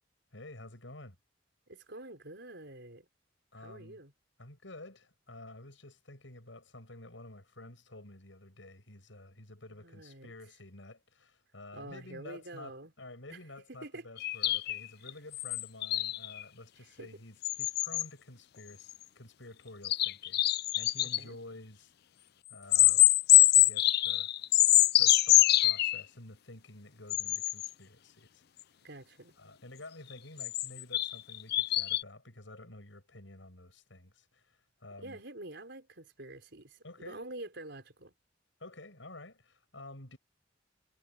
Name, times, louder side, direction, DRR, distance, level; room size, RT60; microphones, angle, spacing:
voice 1, 0.3-1.2 3.5-4.0 4.4-20.4 20.7-21.9 22.5-23.1 23.3-24.3 25.0-28.4 29.4-35.2 36.8-37.2 38.6-40.2, left 2 dB, 80° left, 7.1 m, -50 dB
voice 2, 1.7-3.1 3.6-4.1 9.8-10.3 11.7-12.9 13.3-13.4 13.8-14.1 17.0-17.2 21.0-21.4 28.8-29.3 35.0-38.1, right 2 dB, 65° right, 5.1 m, -47 dB
sound 1, 14.2-16.4 17.4-18.0 18.9-19.0 19.8-21.2 22.7-26.0 27.1-27.7 30.1-32.0, left 15 dB, 55° left, 0.4 m, -25 dB
head